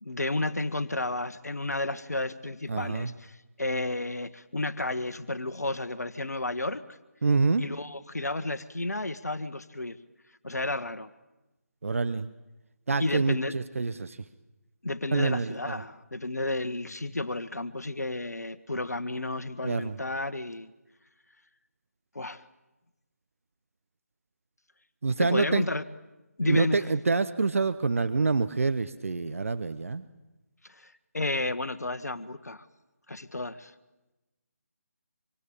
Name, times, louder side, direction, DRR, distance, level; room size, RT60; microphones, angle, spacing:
voice 1, 0.0-6.8 7.6-10.0 10.4-11.1 13.0-13.5 14.8-20.7 22.1-22.4 25.2-25.8 26.4-26.8 30.6-32.6 33.1-33.7, left 2 dB, 80° left, 11 dB, 1.3 m, -32 dB
voice 2, 2.7-3.1 7.2-7.6 11.8-12.3 12.9-14.2 15.1-15.7 19.6-20.0 25.0-25.6 26.4-30.0, right 4 dB, 55° right, 13 dB, 1.1 m, -26 dB
25.5 x 24.5 x 8.6 m, 1.0 s
figure-of-eight pair, 155°, 9 cm